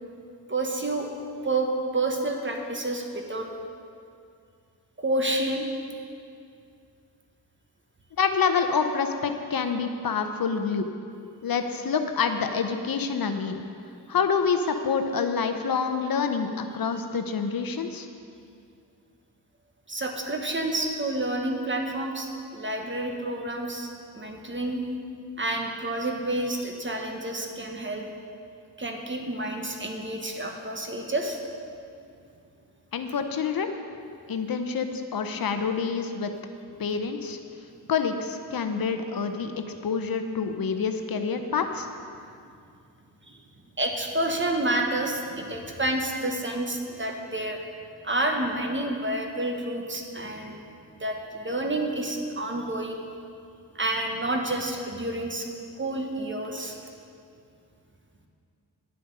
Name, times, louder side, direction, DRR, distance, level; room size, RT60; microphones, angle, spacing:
voice 1, 0.5-1.1 1.4-3.5 5.0-5.7 19.9-24.8 25.4-28.1 28.8-31.4 43.3-43.4 43.8-47.6 48.0-50.6 51.0-52.9 53.7-55.5 55.8-56.9, right 1 dB, 30° right, 2 dB, 1.4 m, -29 dB
voice 2, 8.2-10.9 11.4-13.6 14.1-18.1 32.9-33.7 34.3-36.3 36.8-37.4 37.9-41.9, left 5 dB, 60° left, 7 dB, 0.8 m, -27 dB
10.0 x 7.7 x 5.4 m, 2.4 s
cardioid pair, 60°, 40 cm